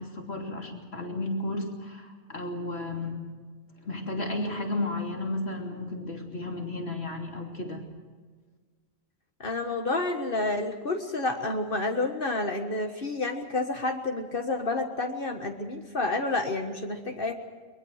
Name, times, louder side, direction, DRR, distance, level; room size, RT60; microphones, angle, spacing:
voice 1, 0.0-3.2 3.8-7.8, left 2 dB, 80° left, 2 dB, 3.5 m, -33 dB
voice 2, 9.4-17.3, left 2 dB, 55° left, 4 dB, 1.7 m, -29 dB
22.5 x 22.0 x 6.5 m, 1.4 s
omnidirectional pair, 1.1 m